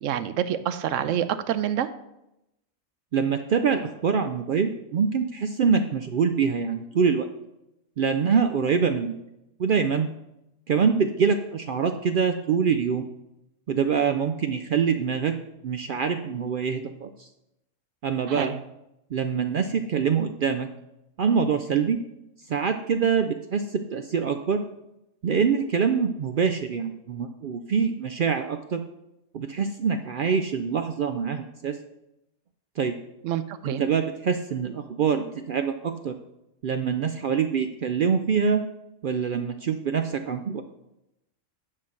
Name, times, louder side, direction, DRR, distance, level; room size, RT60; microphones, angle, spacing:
voice 1, 0.0-1.9 18.3-18.6 33.2-33.8, right 10 dB, 85° right, 12 dB, 1.0 m, -27 dB
voice 2, 3.1-7.3 8.0-9.1 9.6-10.1 10.7-13.0 13.7-15.4 15.6-17.3 18.0-18.6 19.1-20.7 21.2-22.0 22.5-24.6 25.2-28.8 29.3-31.8 32.8-33.0 33.6-36.2 36.6-38.6 39.0-40.6, right 6 dB, 60° right, 8 dB, 0.5 m, -25 dB
9.9 x 3.9 x 6.3 m, 0.88 s
omnidirectional pair, 1.3 m